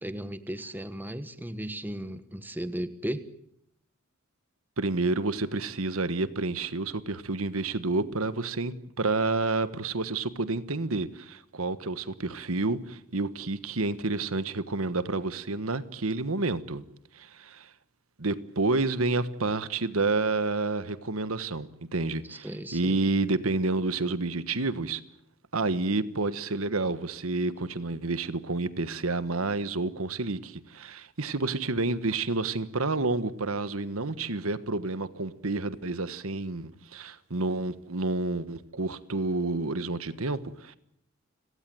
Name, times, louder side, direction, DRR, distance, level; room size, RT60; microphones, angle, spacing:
voice 1, 0.0-3.3 22.3-23.0, right 1 dB, 10° right, 1.3 m, -36 dB
voice 2, 4.8-16.8 17.1-17.7 18.2-25.0 25.5-40.8, right 3 dB, 80° right, 1.4 m, -29 dB
29.5 x 18.0 x 7.8 m
head